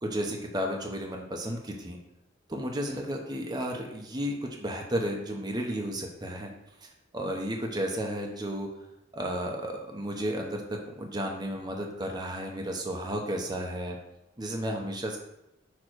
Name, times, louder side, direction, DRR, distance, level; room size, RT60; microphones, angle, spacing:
voice 1, 0.0-2.0 2.5-6.5 6.8-8.7 9.1-14.0 14.4-15.2, equal, 20° right, 1 dB, 0.8 m, -33 dB
6.4 x 3.7 x 6.1 m, 0.87 s
head